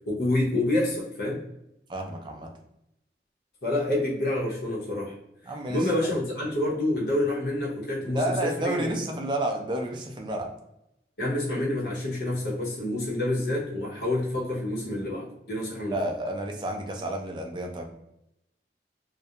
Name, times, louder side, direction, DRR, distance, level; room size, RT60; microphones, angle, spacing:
voice 1, 0.1-1.4 3.6-5.1 5.7-8.9 11.2-16.0, left 1 dB, 65° left, -5 dB, 0.8 m, -28 dB
voice 2, 1.9-2.5 5.5-5.9 8.1-10.5 15.9-17.9, right 1 dB, 25° right, 2 dB, 0.4 m, -30 dB
2.3 x 2.1 x 2.7 m, 0.83 s
head